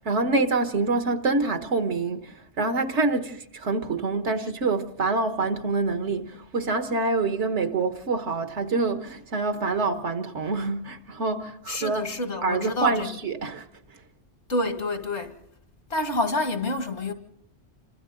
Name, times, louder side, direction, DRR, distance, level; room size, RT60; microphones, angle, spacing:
voice 1, 0.0-12.1 12.4-13.7, right 3 dB, 80° right, 1.6 m, -26 dB
voice 2, 11.7-13.1 14.5-15.4 15.9-17.1, left 2 dB, 90° left, 2.3 m, -28 dB
28.0 x 25.5 x 3.9 m
omnidirectional pair, 1.2 m